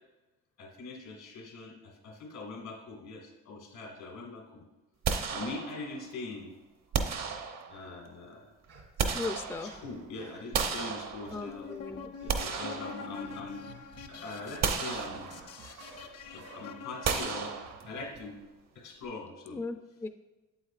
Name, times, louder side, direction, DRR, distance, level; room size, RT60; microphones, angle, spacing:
voice 1, 0.6-4.7 5.3-6.5 7.7-8.5 9.6-11.7 12.2-13.7 14.1-15.3 15.6-16.0 16.3-17.6 17.8-18.4 18.7-19.6, left 3 dB, 85° left, 1 dB, 2.0 m, -42 dB
sound 1, 5.0-6.1 6.9-8.0 8.6-10.0 10.5-11.6 12.1-13.6 13.9-14.1 14.6-15.7 17.0-18.2, right 6 dB, 60° right, 0.8 m, -33 dB
sound 2, 8.7-10.5 11.2-11.8 12.2-18.3, right 2 dB, 80° right, 2.2 m, -52 dB
voice 2, 9.1-9.7 11.3-12.1 19.5-20.1, left 3 dB, 10° left, 9 dB, 0.3 m, -37 dB
sound 3, 11.3-17.6, left 6 dB, 55° left, 0.7 m, -46 dB
8.0 x 7.9 x 2.4 m, 1.1 s
cardioid pair, 90°, 30 cm